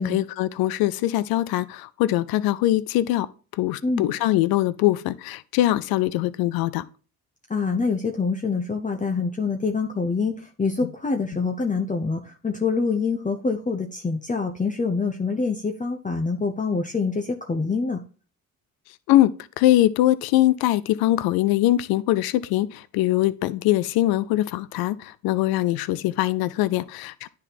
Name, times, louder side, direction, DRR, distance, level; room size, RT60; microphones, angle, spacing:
voice 1, 0.0-3.3 3.6-6.8 19.1-19.3 19.6-27.3, left 15 dB, 75° left, 0.6 m, -22 dB
voice 2, 7.5-18.0, left 4 dB, 20° left, 0.9 m, -25 dB
9.8 x 3.7 x 4.1 m
supercardioid pair, 60°, 37 cm